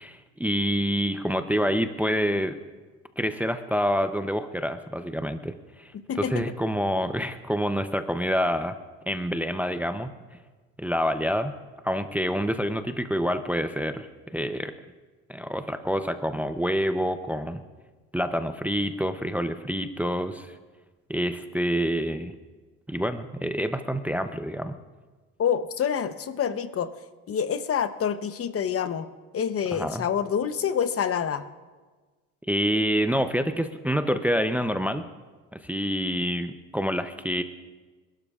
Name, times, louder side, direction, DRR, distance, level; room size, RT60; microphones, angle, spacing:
voice 1, 0.0-2.6 3.2-8.8 9.1-10.1 10.8-11.5 11.8-14.1 14.3-14.7 15.3-17.6 18.1-20.6 21.1-22.3 22.9-24.8 29.7-30.1 32.5-35.1 35.5-37.4, equal, 5° right, 9 dB, 0.6 m, -27 dB
voice 2, 6.1-6.4 25.4-26.9 27.3-29.1 29.3-31.4, left 8 dB, 40° left, 11 dB, 0.9 m, -27 dB
28.5 x 12.5 x 2.4 m, 1.3 s
supercardioid pair, 90°, 36 cm